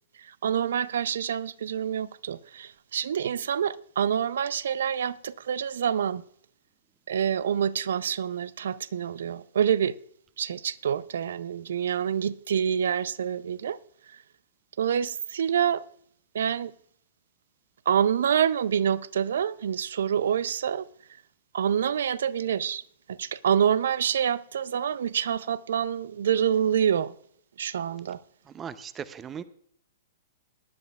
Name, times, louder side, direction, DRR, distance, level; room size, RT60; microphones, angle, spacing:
voice 1, 0.2-6.2 7.1-10.0 10.4-13.8 14.1-14.2 14.8-15.8 16.3-16.7 17.9-20.9 21.5-22.8 23.1-27.1 27.6-28.2, right 8 dB, 70° right, 0.5 m, -27 dB
voice 2, 28.5-29.4, right 7 dB, 20° right, 0.6 m, -38 dB
19.5 x 10.5 x 2.3 m
hypercardioid pair, 120°, 0 cm